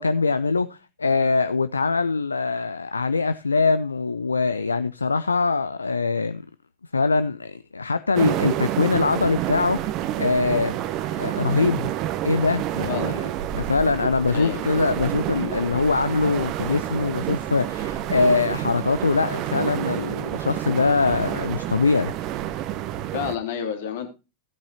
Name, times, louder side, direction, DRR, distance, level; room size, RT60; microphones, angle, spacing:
voice 1, 0.0-6.4 6.9-10.8 11.1-11.9 12.2-13.3 13.5-22.1, left 4 dB, 75° left, 0.5 m, -23 dB
sound 1, 8.1-23.4, right 12 dB, 40° right, 0.9 m, -29 dB
voice 2, 12.9-13.2 14.3-14.6 23.1-24.1, left 8 dB, 55° left, 2.9 m, -29 dB
16.0 x 8.5 x 2.8 m
figure-of-eight pair, 90°, 0 cm